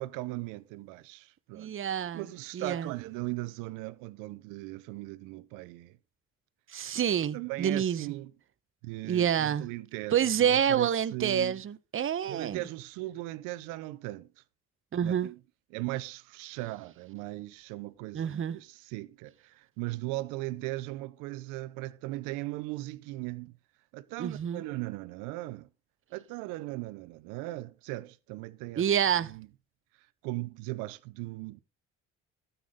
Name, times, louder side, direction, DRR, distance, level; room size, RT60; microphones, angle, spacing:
voice 1, 0.0-1.7 2.1-6.0 7.3-8.3 8.8-11.6 12.3-14.3 15.0-15.4 15.7-23.6 23.9-25.7 26.1-28.9 29.2-29.5 30.2-31.6, right 19 dB, 85° right, 0.8 m, -38 dB
voice 2, 1.5-2.2 2.5-2.9 6.7-8.1 9.1-9.7 10.1-12.6 14.9-15.3 18.1-18.6 24.2-24.6 28.8-29.3, right 9 dB, 40° right, 0.9 m, -28 dB
12.5 x 8.3 x 3.6 m
supercardioid pair, 70°, 31 cm